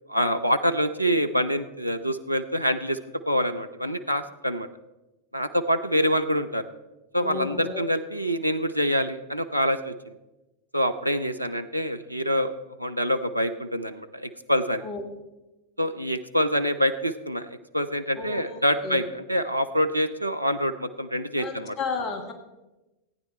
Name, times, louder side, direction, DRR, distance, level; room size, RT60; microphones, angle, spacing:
voice 1, 0.1-3.0 3.3-4.7 5.3-6.6 7.1-10.1 10.7-14.8 15.8-21.8, equal, 90° right, 9 dB, 0.5 m, -26 dB
voice 2, 7.2-7.8 14.8-15.0 18.2-19.0 21.4-22.3, left 4 dB, 35° left, 6 dB, 1.4 m, -33 dB
15.0 x 9.2 x 4.4 m, 1.0 s
figure-of-eight pair, 90°, 0 cm